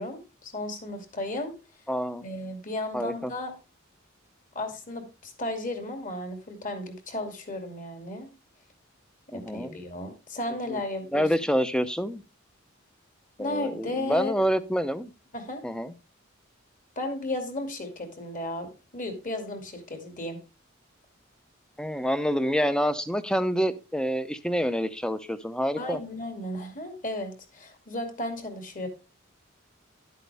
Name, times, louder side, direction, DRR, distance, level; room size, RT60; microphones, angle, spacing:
voice 1, 0.0-1.5 2.2-3.6 4.5-8.3 9.3-11.3 13.4-14.3 15.3-15.6 17.0-20.4 25.8-28.9, left 1 dB, 40° left, 5 dB, 2.5 m, -34 dB
voice 2, 1.9-2.2 2.9-3.3 9.3-9.8 10.7-10.8 11.1-12.2 13.4-15.1 15.6-15.9 21.8-26.0, equal, 5° left, 12 dB, 0.7 m, -27 dB
11.5 x 8.2 x 3.5 m, 0.29 s
head